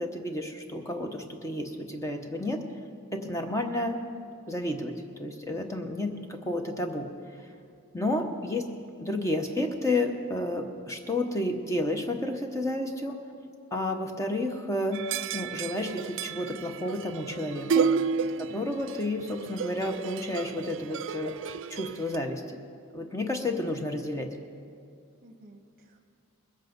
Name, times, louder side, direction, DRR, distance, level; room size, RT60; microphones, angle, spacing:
voice 1, 0.0-2.6 3.1-4.0 4.5-7.1 7.9-8.7 9.0-13.2 13.7-15.0 15.3-17.9 18.4-21.3 21.7-22.6 22.9-24.3, left 1 dB, 15° left, 4 dB, 0.9 m, -31 dB
sound 1, 14.9-22.2, right 6 dB, 60° right, 0.3 m, -32 dB
voice 2, 18.2-18.8 25.2-26.0, right 1 dB, 40° right, 4 dB, 1.3 m, -50 dB
21.0 x 8.2 x 5.3 m, 2.3 s
head